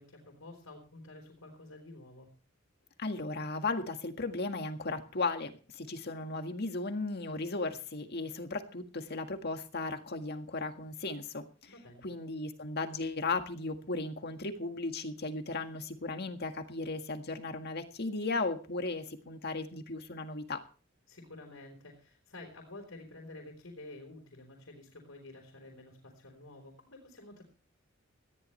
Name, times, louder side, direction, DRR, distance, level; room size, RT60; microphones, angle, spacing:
voice 1, 0.0-2.3 11.7-12.1 21.1-27.4, left 2 dB, 90° left, 1 dB, 4.1 m, -50 dB
voice 2, 3.0-11.5 12.0-20.6, left 3 dB, 55° left, 6 dB, 1.8 m, -36 dB
19.0 x 14.5 x 3.3 m, 0.37 s
head